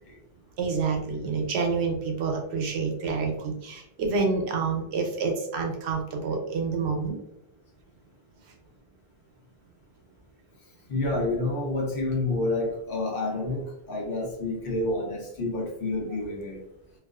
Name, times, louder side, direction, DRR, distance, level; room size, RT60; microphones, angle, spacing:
voice 1, 0.6-7.2, right 4 dB, 80° right, 3 dB, 0.8 m, -28 dB
voice 2, 10.9-16.6, left 2 dB, 60° left, -1 dB, 0.8 m, -29 dB
2.4 x 2.3 x 2.3 m, 0.80 s
omnidirectional pair, 1.1 m